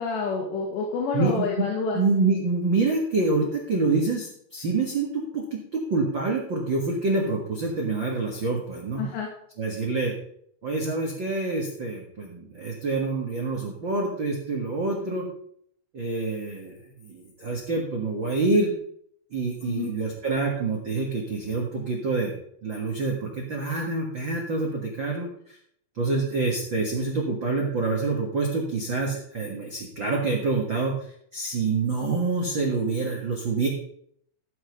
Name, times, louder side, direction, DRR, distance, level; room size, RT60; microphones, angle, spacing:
voice 1, 0.0-2.0 9.0-9.3 19.6-19.9, left 4 dB, 75° left, -1 dB, 4.0 m, -28 dB
voice 2, 1.1-1.6 1.9-9.1 9.6-10.1 10.6-15.3 15.9-18.7 19.3-22.3 22.6-25.6 25.9-31.0 31.3-33.7, right 3 dB, 75° right, -2 dB, 1.1 m, -26 dB
14.0 x 6.6 x 5.2 m, 0.67 s
omnidirectional pair, 5.2 m